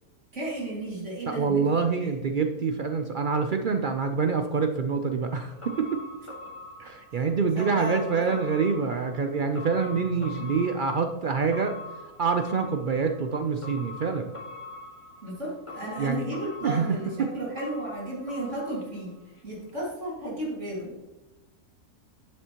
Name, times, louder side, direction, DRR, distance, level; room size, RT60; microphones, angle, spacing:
voice 1, 0.3-1.7 2.0-2.2 7.1-7.3 7.6-8.4 15.2-21.0, right 1 dB, 50° right, -5 dB, 2.5 m, -34 dB
voice 2, 1.3-6.0 6.8-11.8 12.2-14.3 16.0-16.2 16.6-16.9 17.2-17.3, right 5 dB, 80° right, 6 dB, 0.4 m, -26 dB
sound 1, 5.2-19.4 19.7-19.8, left 2 dB, 20° left, 1.4 m, -44 dB
11.0 x 7.7 x 2.9 m, 1.1 s
omnidirectional pair, 1.6 m